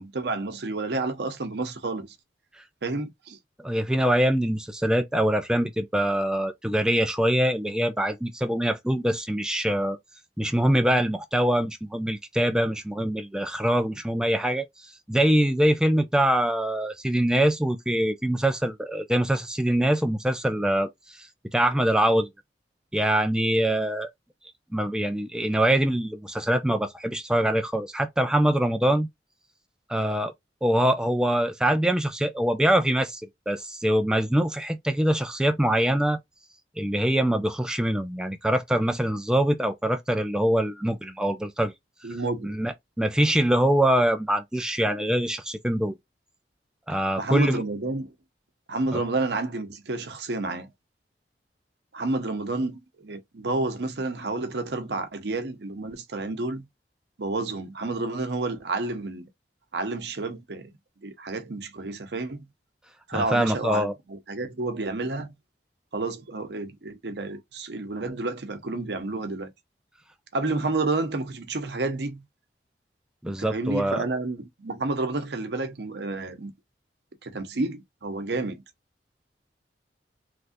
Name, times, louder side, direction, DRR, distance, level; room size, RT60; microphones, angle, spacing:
voice 1, 0.0-2.1 2.8-3.4 42.0-42.6 47.2-48.1 48.7-50.7 51.9-56.7 57.2-59.3 59.7-60.7 61.0-62.4 63.1-65.3 65.9-69.5 70.3-72.2 73.3-76.5 77.2-78.6, right 2 dB, 65° right, 0.7 m, -30 dB
voice 2, 3.6-10.0 10.4-22.3 22.9-24.1 24.7-29.1 29.9-30.3 30.6-36.2 36.8-41.7 42.4-45.9 46.9-47.6 48.9-49.0 63.1-63.9 73.2-74.1, right 1 dB, 5° right, 0.3 m, -24 dB
3.2 x 2.4 x 2.6 m
head